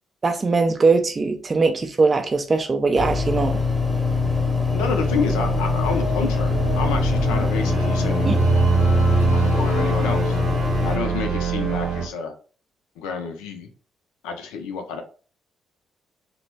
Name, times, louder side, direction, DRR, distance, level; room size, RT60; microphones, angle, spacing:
voice 1, 0.2-3.6 8.3-8.4, right 4 dB, 30° right, 0.3 m, -20 dB
sound 1, 3.0-11.0, left 4 dB, 10° left, 0.8 m, -23 dB
voice 2, 4.7-8.3 9.3-10.4 10.8-12.3 13.0-13.7 14.2-15.0, left 5 dB, 65° left, 0.4 m, -29 dB
sound 2, 5.0-12.1, right 4 dB, 75° right, 0.8 m, -24 dB
2.8 x 2.1 x 3.2 m
figure-of-eight pair, 45°, 0 cm